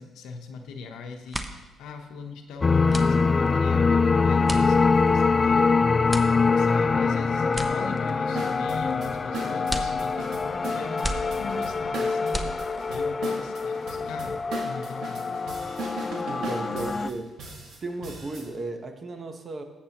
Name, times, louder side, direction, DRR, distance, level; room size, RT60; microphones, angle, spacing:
voice 1, 0.0-5.8 6.6-15.4 16.7-16.9, left 5 dB, 90° left, 4 dB, 0.9 m, -40 dB
sound 1, 0.6-0.9 1.1-13.1, equal, 5° right, 0.8 m, -37 dB
sound 2, 2.6-17.1, left 4 dB, 30° left, 0.3 m, -24 dB
sound 3, 8.3-18.5, right 1 dB, 70° right, 1.9 m, -38 dB
voice 2, 16.3-17.3 17.8-19.6, right 2 dB, 40° right, 6 dB, 1.1 m, -35 dB
13.5 x 7.5 x 3.0 m, 1.2 s
cardioid pair, 90°, 0 cm